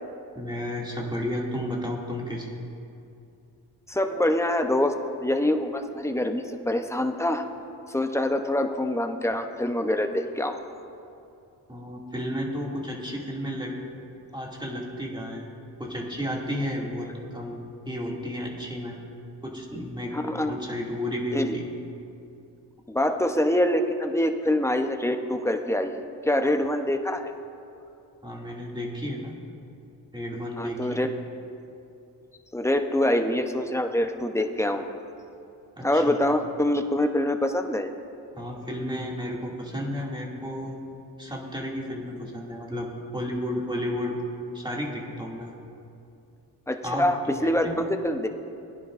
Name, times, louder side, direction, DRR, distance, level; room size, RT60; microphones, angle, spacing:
voice 1, 0.3-2.5 11.7-13.7 14.3-15.5 15.8-19.0 19.4-20.1 20.4-21.7 28.2-29.3 30.1-31.0 35.8-36.2 38.3-40.8 41.2-44.2 44.5-45.6 46.8-47.1 47.6-47.8, equal, 10° right, -3 dB, 2.5 m, -32 dB
voice 2, 3.9-4.9 5.2-7.5 7.9-10.6 20.1-20.5 21.3-21.6 22.9-27.3 30.6-31.1 32.5-34.8 35.8-37.9 46.7-47.2 47.4-48.3, left 1 dB, 5° left, 5 dB, 0.8 m, -25 dB
20.0 x 10.5 x 2.6 m, 2.7 s
cardioid pair, 60°, 41 cm